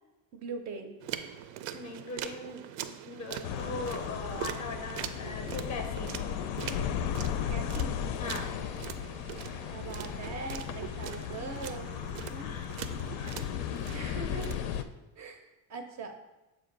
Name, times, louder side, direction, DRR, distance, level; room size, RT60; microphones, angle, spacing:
voice 1, 0.3-0.9 7.5-8.0 9.7-11.9 13.9-14.5 15.2-16.2, right 4 dB, 40° right, 6 dB, 0.5 m, -41 dB
sound 1, 1.0-14.9, right 10 dB, 90° right, 0.5 m, -43 dB
voice 2, 1.7-6.2 8.2-8.6 12.3-12.7 13.2-13.4, left 2 dB, 15° left, 5 dB, 0.4 m, -40 dB
sound 2, 3.4-14.8, left 9 dB, 75° left, 0.5 m, -35 dB
7.0 x 2.6 x 5.1 m, 1.0 s
cardioid pair, 165°, 46 cm